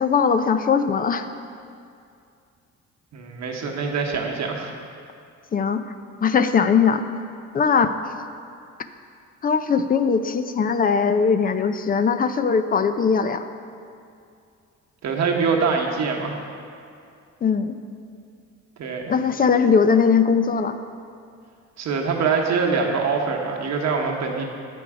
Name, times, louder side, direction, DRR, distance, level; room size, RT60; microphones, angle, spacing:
voice 1, 0.0-1.3 5.5-5.9 6.2-7.1 7.5-7.9 9.4-13.5 17.4-17.8 19.1-20.8, left 6 dB, 30° left, 10 dB, 0.4 m, -20 dB
voice 2, 3.1-4.7 15.0-16.4 18.8-19.1 21.8-24.4, right 5 dB, 65° right, 1 dB, 1.1 m, -24 dB
8.3 x 5.3 x 4.8 m, 2.4 s
cardioid pair, 90°, 30 cm